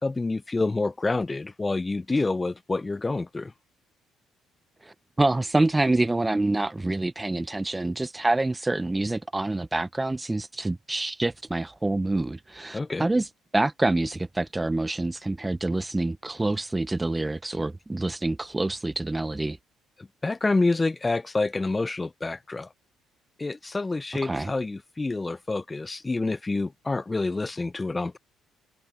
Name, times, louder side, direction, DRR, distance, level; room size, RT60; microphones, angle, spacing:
voice 1, 0.0-3.5 12.7-13.1 20.2-22.7 23.4-28.2, left 3 dB, 25° left, 0.8 m, -27 dB
voice 2, 4.8-19.6 24.2-24.5, right 2 dB, 15° right, 0.6 m, -26 dB
supercardioid pair, 60°, 0 cm